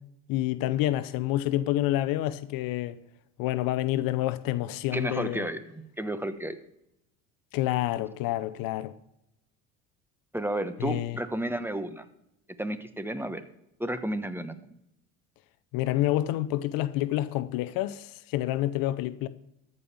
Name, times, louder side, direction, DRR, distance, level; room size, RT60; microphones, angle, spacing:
voice 1, 0.3-3.0 3.4-5.5 7.5-8.9 10.8-11.2 15.7-19.3, left 15 dB, 65° left, 0.7 m, -28 dB
voice 2, 4.9-6.6 10.3-12.0 12.6-13.4 13.8-14.5, right 1 dB, 5° right, 1.1 m, -32 dB
13.5 x 5.5 x 7.2 m
hypercardioid pair, 75°, 37 cm